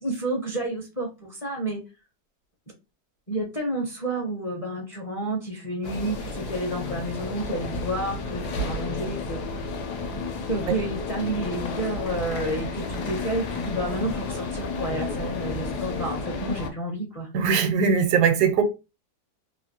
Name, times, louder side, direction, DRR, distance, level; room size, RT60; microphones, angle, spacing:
voice 1, 0.0-1.8 3.3-9.7 10.5-17.3, right 1 dB, 35° left, 0.6 m, -30 dB
sound 1, 5.8-16.7, left 3 dB, 80° left, 1.2 m, -32 dB
voice 2, 17.3-18.6, right 6 dB, 80° right, 1.2 m, -20 dB
3.1 x 2.5 x 2.8 m
omnidirectional pair, 1.7 m